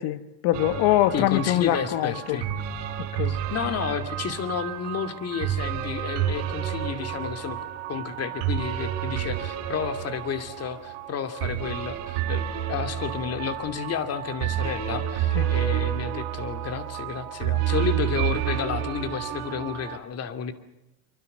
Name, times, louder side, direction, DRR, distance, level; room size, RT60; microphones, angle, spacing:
voice 1, 0.0-2.4 3.0-3.4 15.3-15.5, left 14 dB, 65° left, 1.6 m, -24 dB
sound 1, 0.5-20.0, right 11 dB, 70° right, 4.6 m, -30 dB
voice 2, 1.1-2.5 3.3-7.6 7.9-20.5, left 7 dB, 35° left, 2.7 m, -31 dB
25.5 x 25.0 x 6.7 m
supercardioid pair, 125°, 41 cm